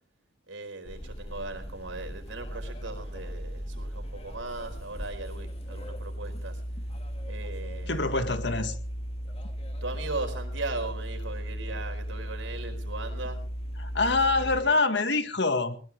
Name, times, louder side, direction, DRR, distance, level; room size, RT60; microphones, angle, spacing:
voice 1, 0.5-6.6 7.3-8.0 9.8-13.4 14.1-14.6, right 3 dB, 90° right, 6 dB, 4.5 m, -38 dB
sound 1, 0.8-14.6, equal, 30° left, 2.4 m, -36 dB
voice 2, 7.9-8.8 13.8-15.8, left 3 dB, 60° left, 9 dB, 1.9 m, -25 dB
21.0 x 19.5 x 3.5 m, 0.41 s
head